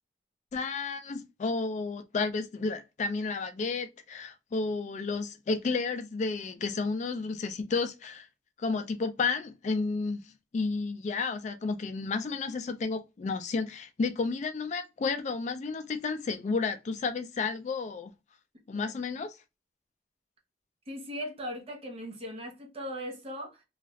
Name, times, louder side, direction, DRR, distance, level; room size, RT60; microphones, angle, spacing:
voice 1, 0.5-8.3 8.6-10.2 10.5-18.1 18.7-19.3, left 4 dB, 40° left, 0.3 m, -32 dB
voice 2, 20.9-23.6, equal, 35° right, 0.9 m, -38 dB
2.5 x 2.3 x 3.0 m
head